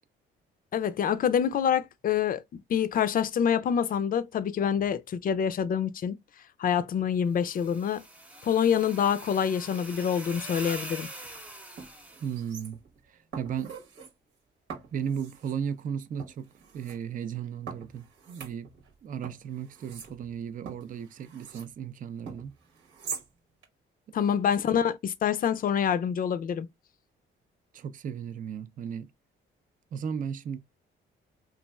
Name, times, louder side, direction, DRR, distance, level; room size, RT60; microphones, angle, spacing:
voice 1, 0.7-6.2 6.6-8.0 8.4-11.1 24.1-26.7, left 8 dB, 45° left, 0.4 m, -26 dB
sound 1, 7.4-12.3, right 1 dB, 5° right, 0.8 m, -43 dB
sound 2, 11.2-11.4 11.8-13.0 13.3-14.1 14.7-15.6 16.2-17.0 17.7-18.9 19.2-21.7 22.3-23.3 23.6-23.7, right 6 dB, 80° right, 1.1 m, -44 dB
voice 2, 12.2-12.8 13.0-13.8 14.9-16.5 16.7-18.7 19.0-22.6 24.1-24.2 27.7-29.1 29.9-30.6, right 7 dB, 45° right, 0.4 m, -35 dB
3.0 x 2.4 x 2.2 m
cardioid pair, 90°, 20 cm